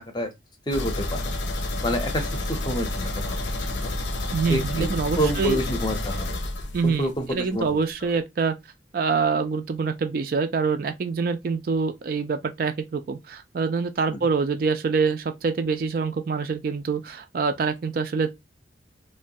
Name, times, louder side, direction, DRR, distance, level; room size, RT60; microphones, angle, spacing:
sound 1, 0.7-7.4 7.7-7.8 8.2-8.3, left 2 dB, 85° left, 0.6 m, -29 dB
voice 1, 0.7-1.2 1.8-3.9 4.5-4.9 5.2-6.4 6.8-7.7 14.1-14.2, equal, 25° left, 0.6 m, -28 dB
voice 2, 4.3-5.6 6.7-8.6 8.9-18.3, right 5 dB, 50° right, 0.3 m, -25 dB
3.0 x 2.2 x 2.6 m
head